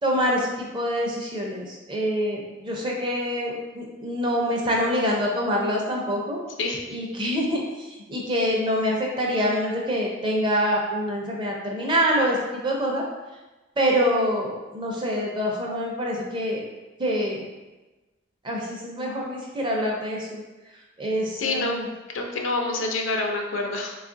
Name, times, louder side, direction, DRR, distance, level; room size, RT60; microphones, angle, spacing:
voice 1, 0.0-6.4 6.9-13.0 13.8-16.7 17.0-17.5 18.4-20.4 21.0-21.9, equal, 25° right, -1 dB, 0.6 m, -25 dB
voice 2, 21.4-21.8 22.1-23.9, left 2 dB, 75° left, 1 dB, 0.5 m, -27 dB
3.1 x 2.4 x 3.8 m, 1.1 s
head